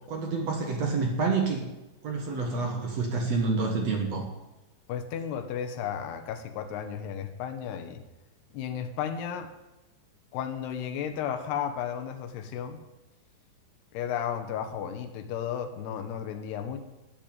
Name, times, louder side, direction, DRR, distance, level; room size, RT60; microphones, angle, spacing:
voice 1, 0.1-1.7 2.0-4.3, right 4 dB, 60° right, 2 dB, 1.8 m, -28 dB
voice 2, 4.9-8.0 8.5-9.5 10.3-12.8 13.9-16.8, left 8 dB, 70° left, 7 dB, 3.1 m, -33 dB
12.5 x 8.5 x 8.8 m, 1.0 s
omnidirectional pair, 5.3 m